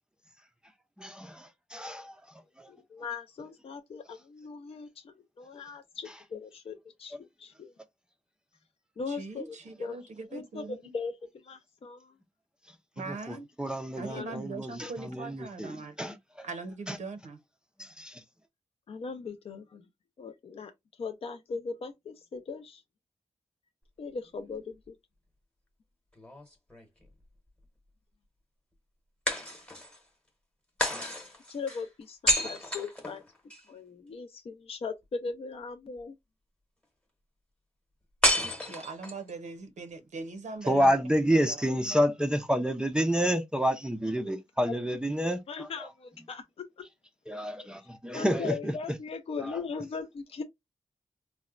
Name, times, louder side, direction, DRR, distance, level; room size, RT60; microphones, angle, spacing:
voice 1, 1.0-2.2 2.6-2.7 7.1-7.2 13.0-16.5 16.9-17.0 17.8-18.2 40.6-45.9 47.3-48.7 49.4-49.6, equal, 5° right, 0.4 m, -29 dB
voice 2, 2.7-7.7 9.0-10.0 10.3-11.1 11.4-12.1 14.0-14.4 18.9-19.8 20.2-20.7 21.0-22.8 24.0-25.0 31.5-33.2 33.7-36.1 44.6-44.7 45.5-46.7 48.1-50.4, left 5 dB, 55° left, 0.4 m, -39 dB
voice 3, 9.1-10.9 13.0-13.5 14.0-16.1 16.4-17.4 38.7-40.9 41.5-41.6, right 3 dB, 90° right, 0.6 m, -41 dB
sound 1, 26.2-27.2 29.3-30.0 30.8-33.6 38.2-39.3, equal, 10° left, 0.9 m, -30 dB
4.1 x 2.1 x 2.3 m
wide cardioid pair, 150°, 12 cm